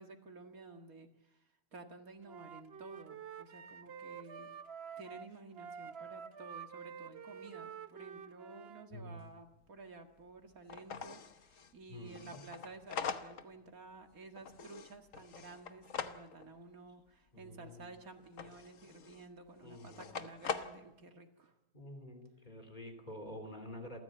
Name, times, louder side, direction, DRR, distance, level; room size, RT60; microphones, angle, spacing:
voice 1, 0.0-4.5 5.0-21.5, right 3 dB, 70° right, 4 dB, 2.4 m, -53 dB
Wind instrument woodwind instrument, 2.2-8.9, right 7 dB, 50° right, 1.0 m, -49 dB
voice 2, 8.9-9.2 11.9-12.4 17.3-17.9 19.6-20.1 21.7-24.0, left 1 dB, 30° left, 5 dB, 3.3 m, -48 dB
sound 1, 9.1-9.2 9.5-9.6 10.2-10.3 10.7-13.6 13.9-16.5 18.2-19.3 19.7-20.8, left 6 dB, 65° left, 1.4 m, -43 dB
28.0 x 14.0 x 7.8 m, 0.91 s
omnidirectional pair, 1.6 m